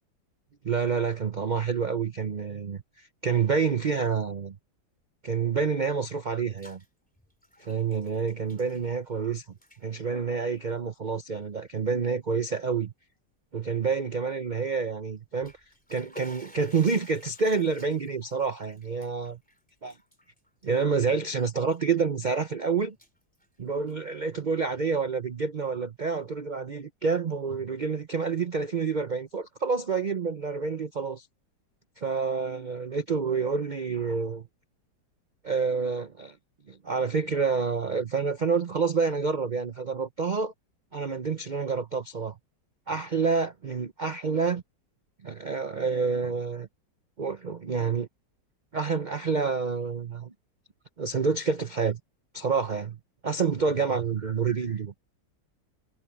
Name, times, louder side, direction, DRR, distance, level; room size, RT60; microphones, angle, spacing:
voice 1, 0.6-4.6 5.2-6.8 7.6-9.5 9.8-12.9 13.5-15.5 15.9-19.4 19.8-20.0 20.6-23.0 23.6-31.3 32.0-34.5 35.4-36.4 36.7-40.5 40.9-42.3 42.9-44.6 45.2-46.7 47.2-48.1 48.7-50.3 51.0-52.0 52.3-53.0 53.2-54.9, right 5 dB, 60° right, 0.4 m, -28 dB
Bathtub (filling or washing), 6.2-6.9 7.2-9.3 9.5-9.8 10.6-10.7 11.4-11.5 11.9-12.0 15.2-21.3 21.7-22.5 22.8-24.1, equal, 5° left, 3.4 m, -52 dB
omnidirectional pair, 2.0 m